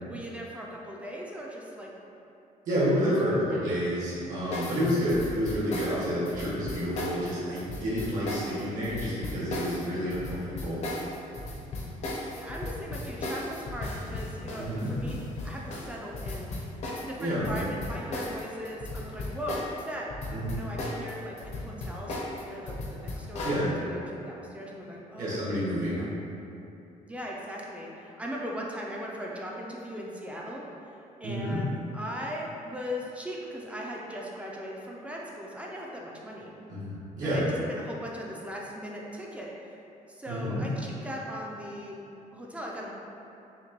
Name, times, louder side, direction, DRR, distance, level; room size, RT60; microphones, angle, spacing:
voice 1, 0.0-1.9 3.0-3.3 3.5-3.7 12.4-20.1 20.5-25.4 26.0-26.1 27.1-36.5 37.2-37.4 37.7-39.7 40.1-42.0 42.3-42.9, equal, 10° right, -3 dB, 0.3 m, -39 dB
voice 2, 2.7-10.8 14.6-14.9 17.2-17.5 20.3-20.6 23.4-23.7 25.2-26.0 31.2-31.6 36.7-37.5 40.3-40.6, equal, 65° right, -9 dB, 1.2 m, -29 dB
sound 1, 4.5-19.8 20.1-23.6, left 2 dB, 50° left, 0.6 m, -36 dB
5.7 x 2.2 x 2.9 m, 2.9 s
cardioid pair, 175°, 15 cm